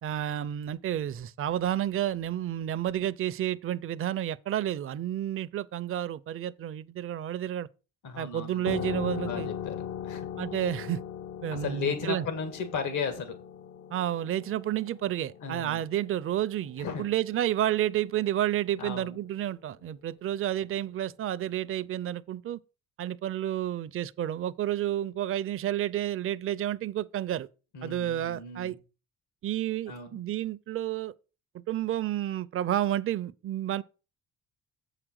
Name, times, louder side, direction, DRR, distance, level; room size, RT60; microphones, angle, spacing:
voice 1, 0.0-7.7 8.2-9.5 10.4-11.0 11.4-12.3 13.9-22.6 23.0-27.5 27.8-28.8 29.4-31.1 31.5-33.8, right 12 dB, 45° right, 0.5 m, -30 dB
voice 2, 8.0-8.8 9.2-10.3 11.5-13.3 15.4-15.9 16.8-17.1 18.8-19.2 27.7-28.8 29.9-30.2, left 5 dB, 80° left, 1.8 m, -35 dB
sound 1, 8.7-17.9, left 9 dB, 50° left, 0.5 m, -39 dB
7.5 x 5.0 x 6.2 m
cardioid pair, 90°, 30 cm